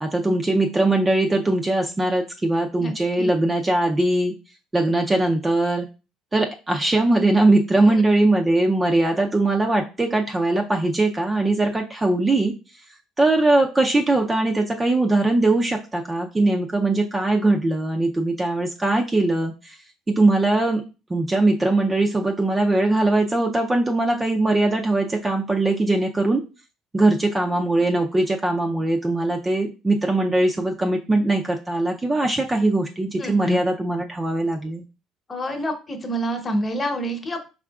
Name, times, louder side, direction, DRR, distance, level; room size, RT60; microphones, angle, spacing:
voice 1, 0.0-4.3 4.7-5.9 6.3-12.5 13.2-19.8 20.1-20.8 21.1-26.4 26.9-34.8, right 2 dB, 15° right, 2 dB, 0.4 m, -21 dB
voice 2, 2.8-3.3 33.2-33.6 35.3-37.5, equal, 25° left, 4 dB, 0.9 m, -27 dB
5.0 x 3.7 x 2.3 m, 0.32 s
cardioid pair, 115°, 0 cm